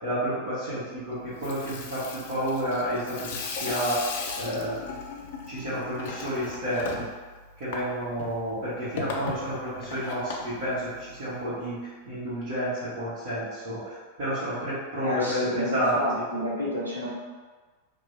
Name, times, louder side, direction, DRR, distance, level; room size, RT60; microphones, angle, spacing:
voice 1, 0.0-4.0 4.4-4.7 5.5-7.0 7.6-16.2, equal, 45° right, -13 dB, 1.3 m, -30 dB
Water tap faucet / Sink (filling or washing), 1.2-11.4, left 4 dB, 55° left, 0.4 m, -37 dB
voice 2, 15.0-17.1, left 1 dB, 85° right, -7 dB, 0.8 m, -30 dB
3.0 x 2.3 x 2.7 m, 1.4 s
figure-of-eight pair, 90°, 0 cm